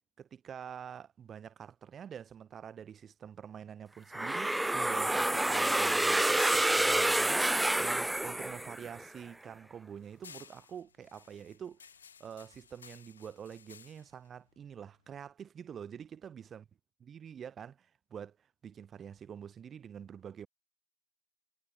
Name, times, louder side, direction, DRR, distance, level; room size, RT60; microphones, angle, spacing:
voice 1, 0.2-11.9 12.2-16.6 17.1-20.5, right 8 dB, 20° right, 2.9 m, -46 dB
sound 1, 4.0-8.5 8.9-15.3, left 7 dB, 85° left, 2.7 m, -56 dB
sound 2, 4.1-9.0, right 1 dB, 5° right, 0.4 m, -28 dB
hypercardioid pair, 120°, 0 cm